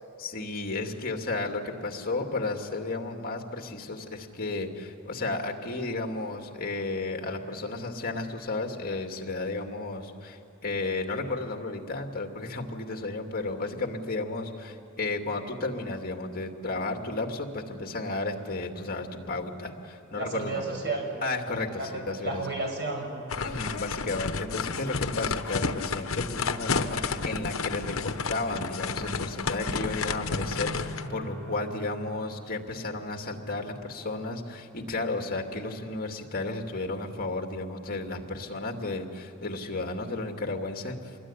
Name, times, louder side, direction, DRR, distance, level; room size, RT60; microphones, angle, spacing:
voice 1, 0.2-20.7 21.2-22.4 23.3-41.2, left 2 dB, 45° left, 3 dB, 2.5 m, -33 dB
voice 2, 20.1-21.1 21.8-23.1, right 3 dB, 55° right, 2 dB, 6.2 m, -32 dB
sound 1, 23.3-31.1, left 4 dB, 70° left, 1.0 m, -31 dB
sound 2, 27.9-33.3, equal, 75° right, 6.4 m, -42 dB
26.5 x 21.0 x 10.0 m, 2.6 s
head